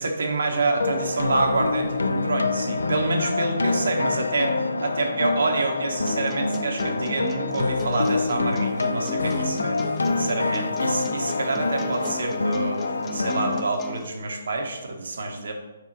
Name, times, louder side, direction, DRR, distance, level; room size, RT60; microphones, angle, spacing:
voice 1, 0.0-4.5 4.8-9.8 10.2-12.8 13.1-15.5, right 3 dB, 70° right, 3 dB, 1.1 m, -27 dB
sound 1, 0.8-13.6, left 3 dB, 85° left, 0.4 m, -26 dB
sound 2, 6.1-14.1, left 3 dB, 20° left, 0.5 m, -37 dB
5.5 x 4.7 x 4.0 m, 1.2 s
figure-of-eight pair, 140°, 0 cm